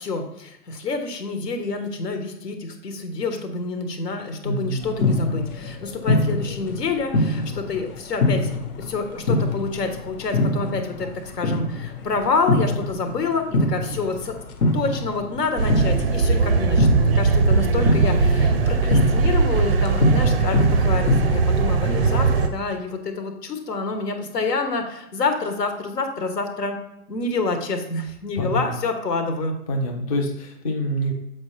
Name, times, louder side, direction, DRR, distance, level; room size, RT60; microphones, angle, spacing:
voice 1, 0.0-14.4 14.7-26.8 27.1-29.6, left 3 dB, 85° left, 6 dB, 1.4 m, -27 dB
voice 2, 4.4-5.0 28.4-28.7 29.7-31.1, equal, 25° left, 1 dB, 0.4 m, -26 dB
sound 1, 4.8-22.5, left 2 dB, 65° left, 1.2 m, -25 dB
sound 2, 15.6-22.5, right 4 dB, 40° right, 0.4 m, -20 dB
7.2 x 4.5 x 3.3 m, 0.83 s
hypercardioid pair, 145°, 47 cm